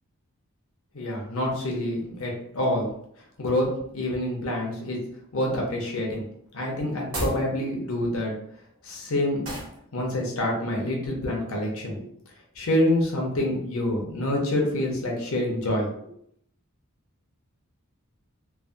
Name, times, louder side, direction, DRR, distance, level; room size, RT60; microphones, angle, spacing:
voice 1, 0.9-2.9 3.4-3.7 3.9-5.0 5.3-6.2 6.5-8.3 8.8-9.5 9.9-12.1 12.6-15.9, left 1 dB, 70° left, -1 dB, 0.8 m, -27 dB
sound 1, 7.0-7.5 9.4-9.8, equal, 75° right, 1.0 m, -31 dB
3.3 x 2.1 x 2.5 m, 0.70 s
head